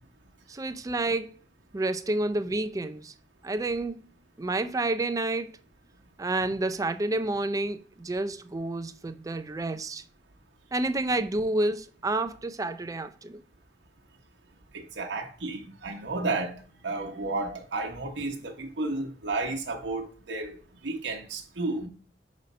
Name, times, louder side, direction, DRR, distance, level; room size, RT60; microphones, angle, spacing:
voice 1, 0.5-1.3 1.7-3.1 3.4-4.0 4.4-5.6 6.2-10.0 10.7-13.4, right 2 dB, 20° right, 0.4 m, -29 dB
voice 2, 14.7-20.6 20.8-21.9, right 3 dB, 75° right, 0.9 m, -32 dB
5.1 x 4.1 x 5.3 m
head